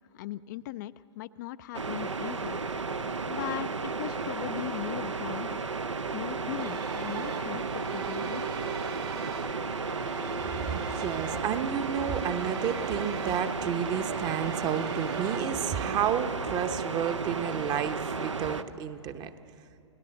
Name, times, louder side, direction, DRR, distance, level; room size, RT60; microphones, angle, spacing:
voice 1, 0.1-2.6 3.3-5.6 6.1-8.6, left 15 dB, 40° left, 12 dB, 0.4 m, -39 dB
sound 1, 1.7-18.6, right 4 dB, 80° right, 1.0 m, -33 dB
sound 2, 6.6-15.5, right 7 dB, 55° right, 2.0 m, -41 dB
voice 2, 10.7-19.3, right 8 dB, 25° right, 9 dB, 1.0 m, -31 dB
28.0 x 17.5 x 7.8 m, 2.7 s
figure-of-eight pair, 110°, 15 cm